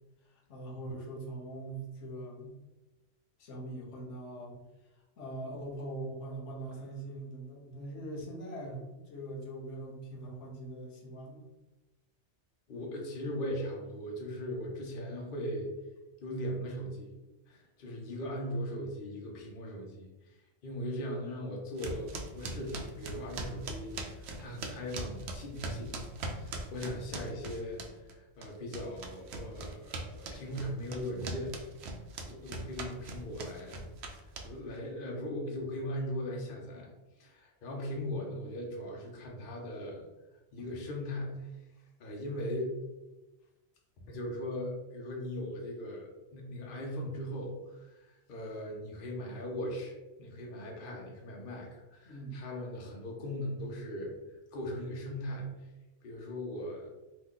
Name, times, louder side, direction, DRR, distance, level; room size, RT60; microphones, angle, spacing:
voice 1, 0.2-2.6 3.4-4.6 4.9-11.4 52.0-52.4, right 1 dB, 90° left, -1 dB, 1.1 m, -42 dB
voice 2, 12.7-15.7 16.2-17.1 17.5-20.1 20.6-31.5 32.3-33.8 34.4-36.9 37.2-40.0 40.5-41.5 42.0-42.7 44.1-54.1 54.5-55.5 56.0-56.9, equal, 55° left, -1 dB, 0.8 m, -39 dB
sound 1, 21.8-28.1 28.4-34.8, right 3 dB, 70° right, 0.8 m, -40 dB
3.0 x 2.2 x 3.6 m, 1.1 s
omnidirectional pair, 1.2 m